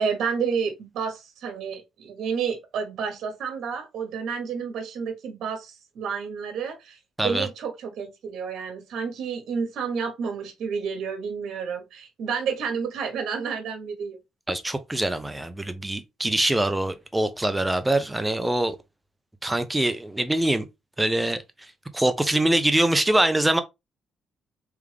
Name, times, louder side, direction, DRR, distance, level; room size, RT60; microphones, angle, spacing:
voice 1, 0.0-7.0 7.2-14.2, right 6 dB, 70° right, 1.2 m, -30 dB
voice 2, 14.5-18.8 19.4-20.7 21.0-21.4 21.9-23.6, right 1 dB, 10° right, 0.7 m, -23 dB
3.5 x 3.5 x 3.4 m
cardioid pair, 90°, 0 cm